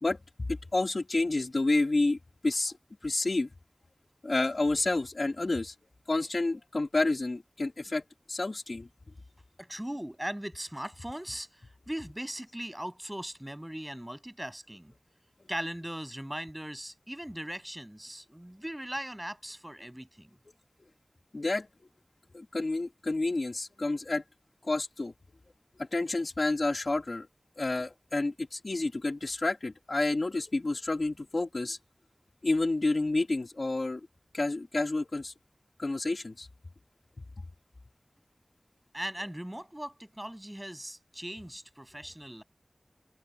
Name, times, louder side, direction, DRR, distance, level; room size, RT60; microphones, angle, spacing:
voice 1, 0.0-2.2 2.4-2.7 3.0-3.5 4.2-5.7 6.1-8.0 8.3-8.9 21.3-21.7 22.3-24.2 24.6-25.1 25.8-27.3 27.6-31.8 32.4-34.1 34.3-35.3 35.8-36.5, left 2 dB, 60° left, 2.4 m, -29 dB
voice 2, 9.6-14.9 15.5-20.3 38.9-42.4, equal, 10° right, 7.5 m, -39 dB
wide cardioid pair, 55°, 0 cm